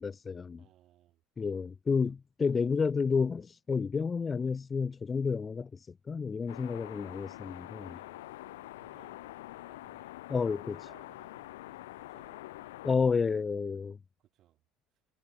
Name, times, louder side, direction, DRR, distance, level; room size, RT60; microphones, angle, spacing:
voice 1, 0.0-0.6 1.4-7.9 10.3-10.8 12.8-14.0, left 5 dB, 30° left, 0.5 m, -30 dB
voice 2, 0.6-1.2 2.0-2.1 2.5-2.7 6.6-6.8 7.8-10.1 10.6-13.5 14.2-14.6, right 13 dB, 55° right, 6.4 m, -64 dB
sound 1, 6.5-13.0, left 17 dB, 75° left, 1.7 m, -46 dB
hypercardioid pair, 70°, 0 cm